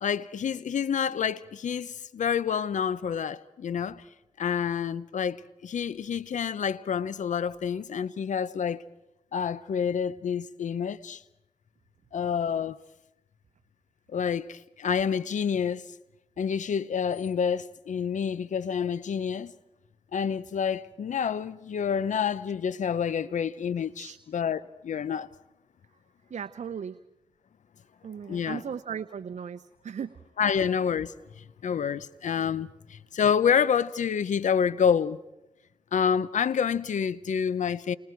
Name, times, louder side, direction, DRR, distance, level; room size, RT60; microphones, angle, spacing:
voice 1, 0.0-4.0 4.4-8.8 9.3-11.2 12.1-12.8 14.1-15.8 16.4-19.5 20.1-25.3 28.3-28.6 30.4-35.2 35.9-37.9, left 7 dB, 85° left, 0.8 m, -28 dB
voice 2, 26.3-27.0 28.0-30.1, right 7 dB, 75° right, 0.7 m, -37 dB
29.5 x 29.0 x 4.6 m
cardioid pair, 40°, 12 cm